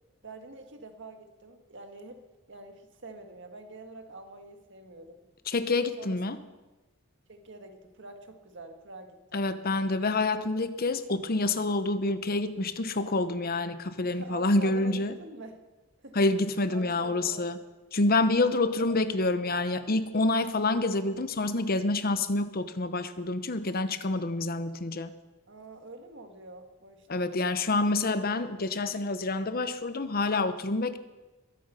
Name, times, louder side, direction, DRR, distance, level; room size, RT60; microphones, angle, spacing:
voice 1, 0.2-5.2 6.0-6.4 7.3-9.5 14.0-15.6 16.0-16.2 16.7-17.5 18.5-19.0 25.5-27.3, right 2 dB, 60° right, 6 dB, 1.7 m, -46 dB
voice 2, 5.5-6.4 9.3-15.1 16.1-17.6 17.9-25.1 27.1-31.0, left 2 dB, 45° left, 11 dB, 0.9 m, -27 dB
22.0 x 9.0 x 5.6 m, 1.1 s
head